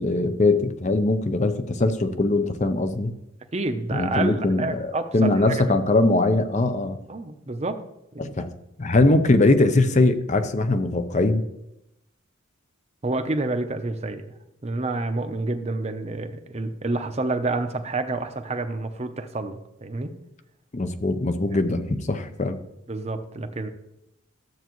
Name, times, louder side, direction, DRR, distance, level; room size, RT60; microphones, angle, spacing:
voice 1, 0.0-3.1 3.9-7.0 8.2-8.5 8.8-11.5 20.7-22.6, left 2 dB, 35° left, 9 dB, 0.6 m, -21 dB
voice 2, 3.5-5.6 7.1-7.8 8.1-8.4 13.0-14.3 14.6-20.1 21.5-21.6 22.9-23.7, right 2 dB, 30° right, 7 dB, 0.7 m, -28 dB
12.5 x 7.9 x 3.1 m, 0.85 s
head